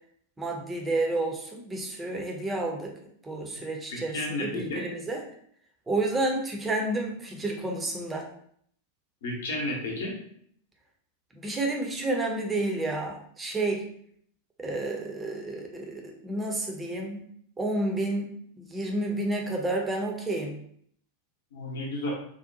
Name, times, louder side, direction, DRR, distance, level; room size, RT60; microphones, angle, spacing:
voice 1, 0.4-2.9 3.2-5.2 5.9-8.3 11.3-13.8 14.6-17.2 17.6-18.3 18.6-20.6, right 2 dB, 15° right, 1 dB, 0.5 m, -30 dB
voice 2, 3.9-4.8 9.2-10.1 21.5-22.1, left 1 dB, 60° left, -1 dB, 0.8 m, -32 dB
2.6 x 2.1 x 2.6 m, 0.65 s
figure-of-eight pair, 90°, 0 cm